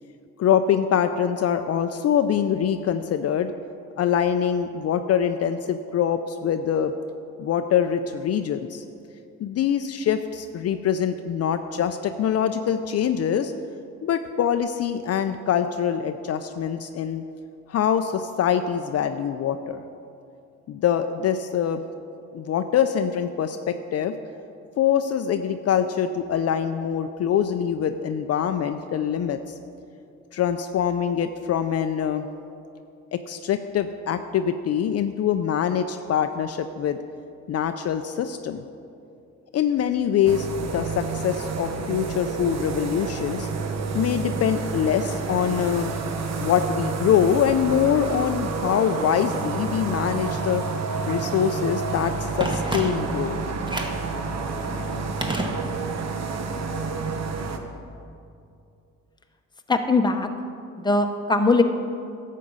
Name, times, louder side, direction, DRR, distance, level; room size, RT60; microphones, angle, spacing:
voice 1, 0.4-3.5 4.0-6.9 7.4-8.8 9.4-13.5 14.0-17.2 17.7-19.8 20.7-21.8 22.3-24.2 24.8-29.5 30.3-32.3 33.1-37.0 37.5-38.6 39.5-43.5 43.9-45.9 46.4-50.6 51.1-53.4, left 8 dB, 55° left, 8 dB, 0.5 m, -24 dB
sound 1, 40.3-57.6, right 4 dB, 60° right, 1.0 m, -29 dB
Telephone, 52.4-53.3 53.7-54.1 55.2-56.1 56.3-56.4, right 1 dB, 15° right, 1.3 m, -30 dB
voice 2, 59.7-60.3 60.8-61.6, left 3 dB, 15° left, 5 dB, 0.8 m, -20 dB
11.5 x 7.5 x 5.4 m, 2.6 s
cardioid pair, 90°, 30 cm